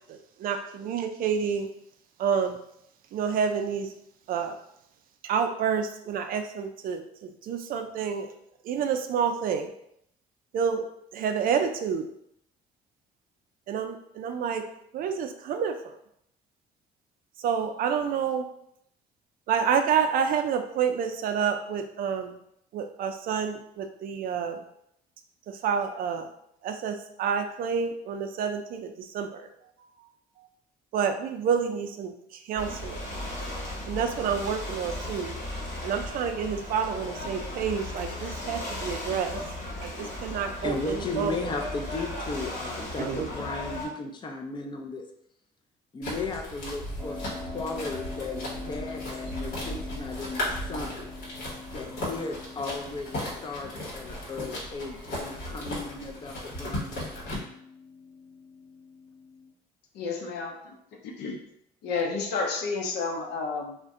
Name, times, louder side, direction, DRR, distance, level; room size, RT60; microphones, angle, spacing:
voice 1, 0.1-1.7 2.2-2.6 3.1-3.9 4.3-4.6 5.2-8.3 8.6-9.7 10.5-10.9 11.1-12.1 13.7-14.6 14.9-15.8 17.4-18.5 19.5-22.4 22.7-24.6 25.5-26.3 26.6-29.5 30.9-33.0 33.9-35.3 35.8-39.4 39.8-41.5 43.0-43.3, right 7 dB, 55° right, 6 dB, 0.4 m, -29 dB
Ocean / Boat Water vehicle, 32.6-43.9, left 1 dB, 45° left, 1.2 m, -36 dB
voice 2, 40.3-45.0 45.9-51.0 51.7-57.0, left 3 dB, 25° left, 4 dB, 0.5 m, -36 dB
sound 1, 46.0-57.4, left 1 dB, 60° left, 1.1 m, -36 dB
Keyboard (musical), 47.0-59.5, left 3 dB, 10° left, 0.8 m, -44 dB
voice 3, 59.9-60.8 61.0-61.4 61.8-63.8, left 4 dB, 80° left, 3 dB, 0.6 m, -31 dB
2.5 x 2.1 x 3.5 m, 0.74 s
cardioid pair, 110°, 17 cm